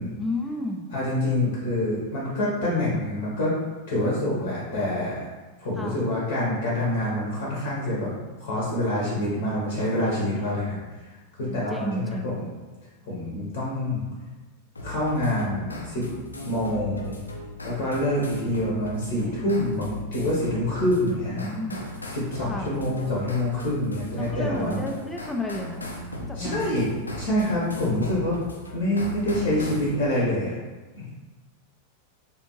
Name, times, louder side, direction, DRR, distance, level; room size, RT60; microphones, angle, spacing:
voice 1, 0.2-0.9 5.7-6.1 11.4-12.4 21.0-21.9 22.4-22.8 24.2-25.9 26.2-26.7, left 1 dB, 10° left, 2 dB, 0.4 m, -33 dB
voice 2, 0.9-3.6 3.9-5.3 5.6-8.1 8.4-11.1 11.4-12.5 13.1-14.0 14.8-16.0 16.4-17.2 17.6-21.4 22.2-24.8 26.4-26.8 27.1-28.4 28.7-30.6 31.0-31.1, left 1 dB, 50° left, -5 dB, 0.8 m, -26 dB
sound 1, 14.8-29.9, left 1 dB, 80° left, 0.5 m, -38 dB
3.4 x 2.5 x 2.9 m, 1.3 s
figure-of-eight pair, 90°, 0 cm